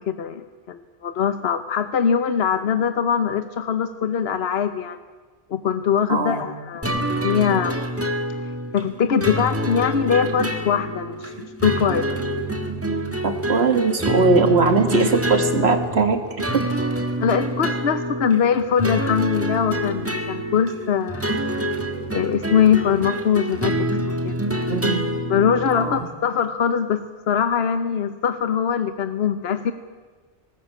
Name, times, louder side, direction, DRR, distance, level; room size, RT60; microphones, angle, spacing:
voice 1, 0.0-5.0 5.5-7.8 8.7-12.1 17.2-21.4 22.1-23.9 24.2-24.4 25.3-29.7, left 7 dB, 75° left, 10 dB, 1.1 m, -22 dB
voice 2, 6.1-6.4 13.2-16.2 16.5-16.6 24.7-25.0 25.8-26.1, right 4 dB, 85° right, 7 dB, 2.1 m, -20 dB
sound 1, 6.8-26.0, equal, 15° right, 1.5 m, -26 dB
19.5 x 18.5 x 8.5 m, 1.4 s
omnidirectional pair, 1.1 m